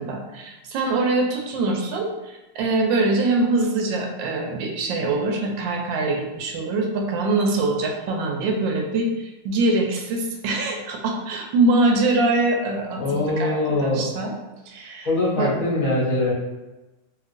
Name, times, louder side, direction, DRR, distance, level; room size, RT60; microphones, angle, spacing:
voice 1, 0.0-14.3 14.7-15.1 15.4-15.5, right 2 dB, 85° right, 1 dB, 1.3 m, -23 dB
voice 2, 13.0-14.1 15.0-16.3, left 2 dB, 60° left, -7 dB, 0.9 m, -22 dB
2.9 x 2.8 x 2.5 m, 1.1 s
omnidirectional pair, 2.0 m